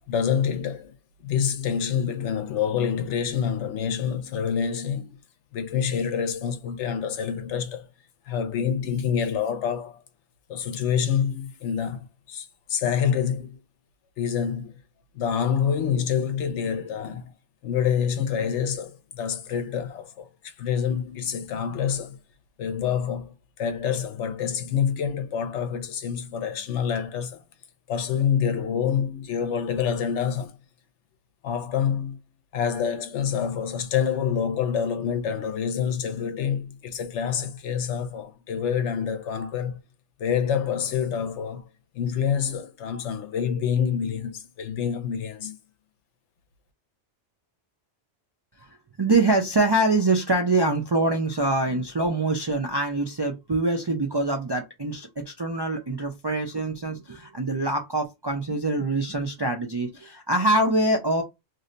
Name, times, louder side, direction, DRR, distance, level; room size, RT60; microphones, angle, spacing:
voice 1, 0.1-0.9 1.2-5.2 5.5-7.9 8.3-10.0 10.5-13.6 14.2-14.8 15.1-17.3 17.6-22.2 22.6-27.4 27.9-30.6 31.4-32.2 32.5-39.8 40.2-41.7 41.9-45.6, left 7 dB, 80° left, 0.9 m, -27 dB
voice 2, 48.6-61.2, right 2 dB, 45° right, 0.3 m, -24 dB
2.7 x 2.1 x 3.8 m
omnidirectional pair, 1.2 m